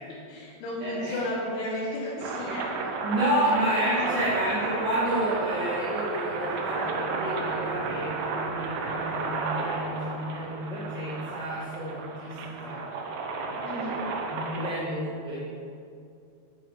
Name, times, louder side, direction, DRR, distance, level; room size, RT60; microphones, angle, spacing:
voice 1, 0.3-3.0 4.1-4.3 13.6-14.0, left 1 dB, 85° left, -9 dB, 4.7 m, -33 dB
voice 2, 0.8-1.2 3.0-12.8 13.4-13.9 14.3-15.5, right 1 dB, 40° right, -10 dB, 1.5 m, -30 dB
sound 1, 2.2-14.7, right 4 dB, 80° right, 3.4 m, -33 dB
9.6 x 9.4 x 4.9 m, 2.4 s
omnidirectional pair, 5.4 m